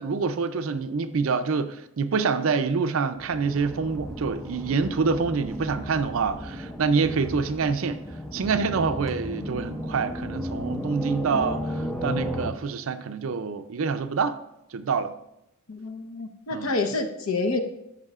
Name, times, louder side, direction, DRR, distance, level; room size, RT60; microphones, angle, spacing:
voice 1, 0.0-8.0 8.3-14.4 14.7-15.1 16.5-16.7, right 5 dB, 70° right, 0.5 m, -26 dB
sound 1, 3.2-12.5, equal, 5° left, 0.5 m, -34 dB
voice 2, 15.7-17.6, left 3 dB, 75° left, 0.9 m, -28 dB
13.0 x 5.5 x 2.4 m
head